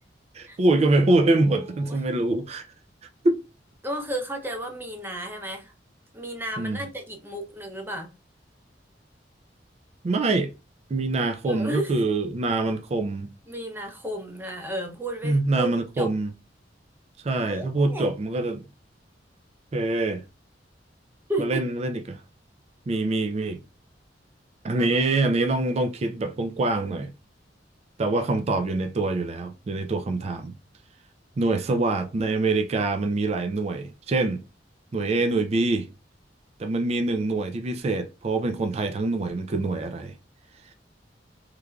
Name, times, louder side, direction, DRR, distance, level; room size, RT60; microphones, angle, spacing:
voice 1, 0.3-2.6 3.2-3.4 6.6-6.8 10.0-10.5 10.9-13.3 15.2-16.3 17.2-18.6 19.7-20.2 21.4-22.2 22.9-23.6 24.6-27.1 28.0-30.5 31.4-34.4 34.9-35.9 36.6-40.1, right 2 dB, 35° right, 0.3 m, -24 dB
voice 2, 1.1-2.0 3.8-5.7 6.1-8.1 11.4-12.0 13.5-16.1 17.5-18.1 21.3-21.6 24.8-24.9, right 1 dB, 10° right, 0.7 m, -33 dB
3.5 x 3.1 x 2.3 m
head